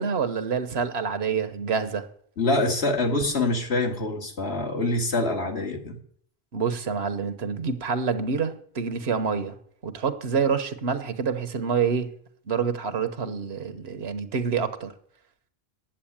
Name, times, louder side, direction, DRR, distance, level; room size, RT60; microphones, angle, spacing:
voice 1, 0.0-2.1 6.5-9.6 9.8-12.1 12.5-14.9, right 6 dB, 85° right, 1.3 m, -27 dB
voice 2, 2.4-6.0, left 2 dB, 85° left, 2.3 m, -25 dB
10.0 x 8.0 x 8.7 m
omnidirectional pair, 1.0 m